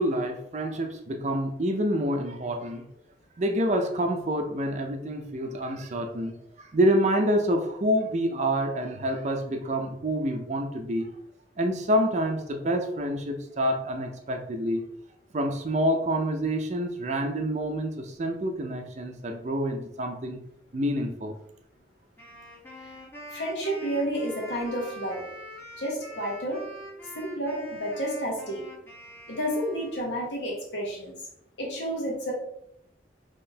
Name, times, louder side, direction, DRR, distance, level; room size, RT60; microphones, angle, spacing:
voice 1, 0.0-2.9 3.4-11.1 11.6-14.8 15.3-20.4 20.7-21.3, equal, 40° right, 4 dB, 0.5 m, -27 dB
Wind instrument woodwind instrument, 22.2-30.3, equal, 15° left, 1.1 m, -44 dB
voice 2, 23.3-25.2 25.8-26.6 27.1-28.6 29.3-31.1 31.6-32.3, equal, 80° left, -2 dB, 1.2 m, -30 dB
3.8 x 3.0 x 2.7 m, 0.76 s
head